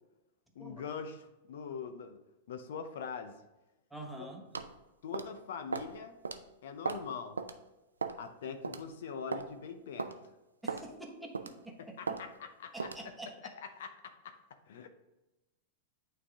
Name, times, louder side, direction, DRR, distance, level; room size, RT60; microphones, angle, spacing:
voice 1, 0.6-2.2 2.5-3.4 4.2-4.3 5.0-6.1 6.6-7.4 8.2-10.1 11.8-12.9 13.8-14.4 14.7-14.9, left 6 dB, 70° left, 8 dB, 0.6 m, -43 dB
voice 2, 3.9-4.4 10.6-12.0 12.7-13.3, right 1 dB, 5° right, 0 dB, 1.1 m, -46 dB
sound 1, 4.5-4.7 5.1-5.4 5.7-5.9 6.2-6.4 6.8-7.1 7.4-7.5 8.0-8.2 8.6-8.8 9.3-9.5 10.0-10.1 10.7-10.9 11.3-11.6 12.1-12.2 12.8-13.0, right 4 dB, 90° right, 0.4 m, -36 dB
8.8 x 3.3 x 3.6 m, 1.0 s
hypercardioid pair, 100°, 0 cm